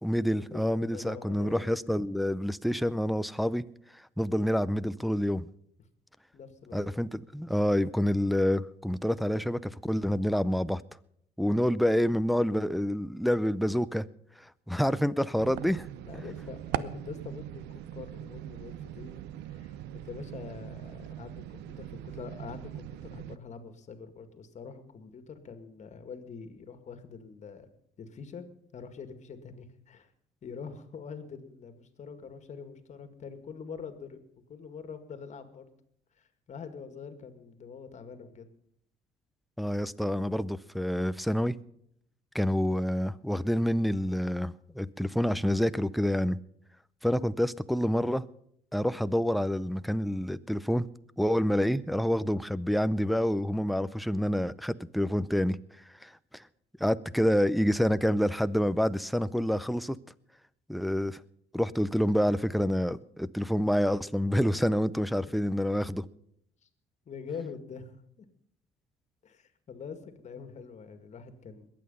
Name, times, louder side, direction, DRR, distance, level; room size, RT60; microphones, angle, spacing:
voice 1, 0.0-3.6 4.2-5.5 6.7-10.8 11.4-14.1 14.7-15.9 39.6-41.5 42.3-46.4 47.0-48.2 48.7-50.9 51.2-55.6 56.0-56.4 56.8-60.0 60.7-61.2 61.5-66.1, equal, ahead, 0.5 m, -27 dB
voice 2, 0.5-1.7 6.3-6.9 16.0-19.2 19.5-27.7 28.0-28.5 28.7-30.1 30.4-34.2 34.5-35.7 36.2-38.5 65.2-65.3 67.1-68.3 69.2-71.7, left 6 dB, 45° left, 2.1 m, -44 dB
sound 1, 15.4-23.4, right 13 dB, 85° right, 0.6 m, -40 dB
21.5 x 8.8 x 5.5 m
cardioid pair, 110°, 17 cm